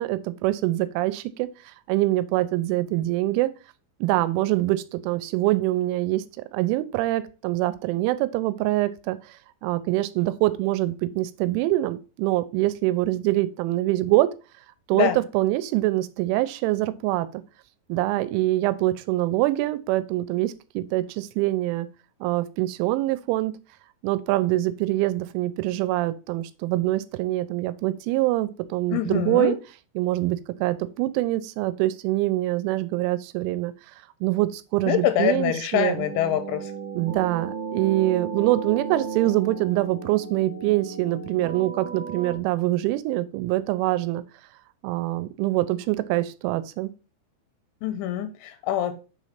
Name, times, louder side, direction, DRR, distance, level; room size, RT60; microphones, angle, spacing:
voice 1, 0.0-3.5 4.0-6.2 6.5-9.4 9.6-14.3 14.9-17.4 17.9-21.9 22.2-23.5 24.0-29.6 30.0-33.7 34.2-36.0 36.9-44.2 44.8-46.9, right 16 dB, 90° right, 3.0 m, -24 dB
voice 2, 28.9-29.5 34.9-36.7 47.8-48.9, left 11 dB, 85° left, 2.9 m, -25 dB
sound 1, 36.0-42.4, right 5 dB, 65° right, 3.0 m, -35 dB
6.9 x 3.0 x 5.7 m
omnidirectional pair, 5.4 m